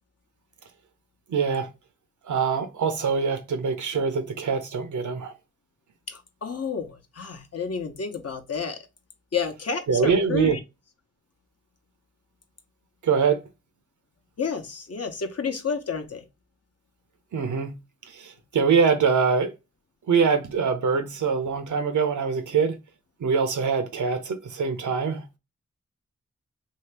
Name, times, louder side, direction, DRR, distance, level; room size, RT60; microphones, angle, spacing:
voice 1, 1.3-1.7 2.2-5.3 9.9-10.6 13.0-13.4 17.3-17.8 18.1-19.5 20.1-22.8 23.2-25.3, right 5 dB, 90° right, 0.7 m, -24 dB
voice 2, 6.1-8.8 9.3-10.6 14.4-16.2, left 5 dB, 55° left, 0.8 m, -30 dB
2.8 x 2.8 x 3.3 m
cardioid pair, 45°, 29 cm